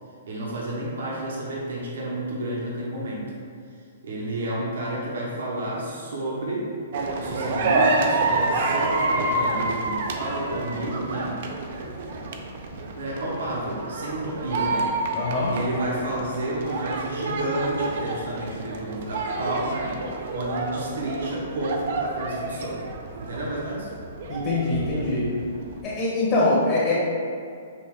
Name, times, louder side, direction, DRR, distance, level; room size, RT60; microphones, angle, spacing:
voice 1, 0.3-3.3 4.0-6.7 7.1-11.4 13.0-14.9 15.5-20.0 20.3-22.8 23.2-23.9, right 1 dB, 75° right, -5 dB, 1.0 m, -30 dB
sound 1, 6.9-25.8, right 2 dB, 55° right, 0.4 m, -29 dB
voice 2, 15.1-15.5 24.3-25.2 25.8-26.9, left 2 dB, 30° left, -8 dB, 1.0 m, -23 dB
5.3 x 2.5 x 3.6 m, 2.3 s
hypercardioid pair, 155°, 0 cm